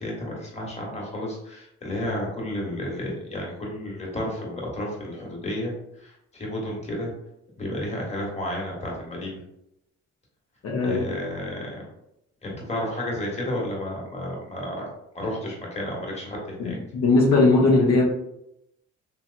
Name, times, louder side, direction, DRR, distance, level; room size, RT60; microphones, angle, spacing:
voice 1, 0.0-5.7 6.0-7.1 7.6-9.4 10.8-11.8 12.4-14.8 15.1-16.8, left 1 dB, 20° left, -3 dB, 1.2 m, -32 dB
voice 2, 10.6-11.0 16.6-18.0, left 3 dB, 60° left, -3 dB, 0.8 m, -19 dB
3.0 x 2.8 x 2.4 m, 0.80 s
cardioid pair, 90°, 30 cm